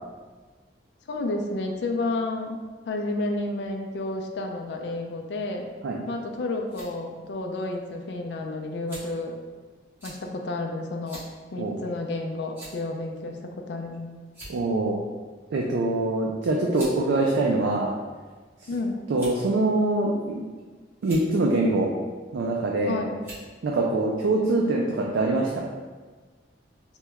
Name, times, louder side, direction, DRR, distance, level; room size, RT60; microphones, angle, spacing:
voice 1, 1.1-5.7 6.1-9.4 10.0-11.2 11.5-14.1 18.7-19.0 22.9-23.2, left 2 dB, 70° left, 3 dB, 0.4 m, -31 dB
sound 1, 6.7-6.9 7.7-7.8 8.9-9.2 10.0-10.2 11.1-11.3 11.7-11.8 12.5-12.9 13.8-13.9 14.3-14.7 15.9-16.0 16.7-17.0 17.8-18.4 19.1-19.5 20.3-20.6 20.9-21.2 22.5-22.7 23.2-23.5, right 1 dB, 10° right, 1.0 m, -43 dB
voice 2, 14.5-15.0 15.5-17.9 19.1-20.4 21.0-21.9 22.3-23.0 23.6-25.6, right 2 dB, 80° right, -1 dB, 0.3 m, -24 dB
2.9 x 2.2 x 3.4 m, 1.4 s
head